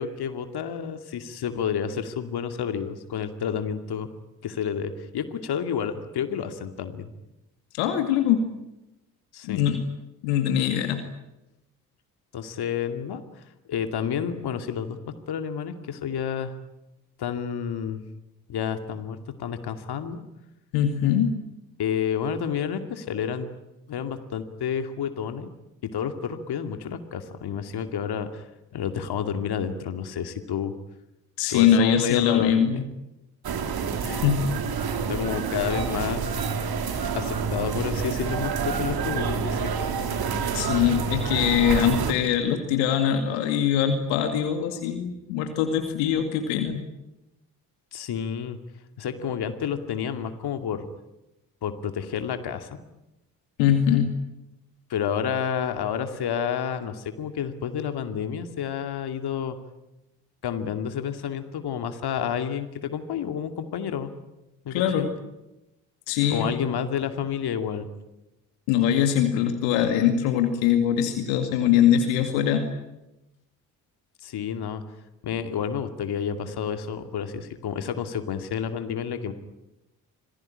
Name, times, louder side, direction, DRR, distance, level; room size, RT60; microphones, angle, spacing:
voice 1, 0.0-4.1 4.4-7.1 9.3-9.7 12.3-13.2 13.7-15.0 15.3-16.5 17.2-18.0 18.5-20.2 21.8-23.5 23.9-25.5 25.8-28.4 28.7-30.7 31.5-32.8 34.1-34.2 35.1-36.3 37.1-39.7 47.9-48.6 49.0-50.9 51.6-52.8 54.9-59.6 60.4-64.1 64.6-65.1 66.3-67.9 74.2-74.8 75.2-79.3, left 8 dB, 55° left, 8 dB, 2.5 m, -30 dB
voice 2, 7.7-8.5 9.4-9.8 10.2-11.0 20.7-21.3 31.4-32.9 34.0-34.4 40.5-46.8 53.6-54.1 64.7-65.1 66.1-66.5 68.7-72.7, left 9 dB, 70° left, 7 dB, 2.3 m, -22 dB
sound 1, 33.4-42.1, right 6 dB, 50° right, 3.0 m, -28 dB
26.5 x 18.5 x 10.0 m, 0.95 s
figure-of-eight pair, 40°, 46 cm